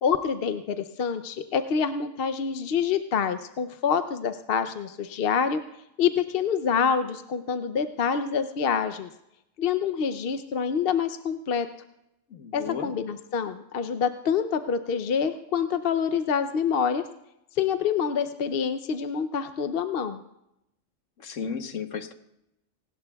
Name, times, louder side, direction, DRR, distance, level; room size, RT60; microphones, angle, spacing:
voice 1, 0.0-5.6 6.0-9.1 9.6-11.7 12.5-17.0 17.6-20.2, left 7 dB, 55° left, 9 dB, 0.8 m, -26 dB
voice 2, 12.3-12.9 21.2-22.1, left 6 dB, 80° left, 8 dB, 1.4 m, -34 dB
24.5 x 18.5 x 2.3 m, 0.83 s
omnidirectional pair, 1.3 m